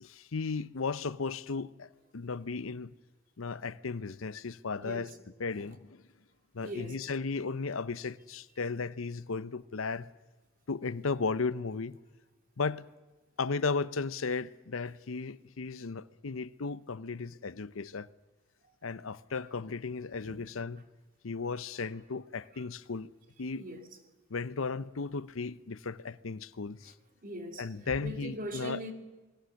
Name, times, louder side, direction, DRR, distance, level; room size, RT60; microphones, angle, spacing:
voice 1, 0.0-2.9 3.4-5.1 5.4-6.0 6.5-10.1 10.7-12.0 12.6-12.9 13.4-18.1 18.8-20.8 21.2-23.1 23.4-23.6 24.3-26.9 27.6-28.8, left 4 dB, 80° left, 0.7 m, -35 dB
voice 2, 6.6-7.0 20.3-20.4 23.6-23.8 27.2-28.9, equal, 45° right, 3.0 m, -40 dB
28.5 x 21.0 x 6.4 m
head